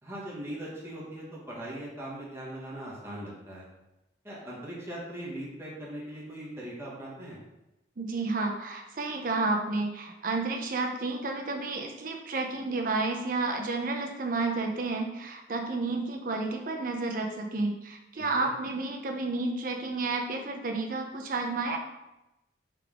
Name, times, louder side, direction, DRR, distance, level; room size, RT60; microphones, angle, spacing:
voice 1, 0.0-3.7 4.2-7.4 18.2-18.5, right 1 dB, 15° right, -6 dB, 1.1 m, -40 dB
voice 2, 8.0-21.8, right 3 dB, 50° right, 3 dB, 0.5 m, -31 dB
3.4 x 3.4 x 3.5 m, 0.94 s
head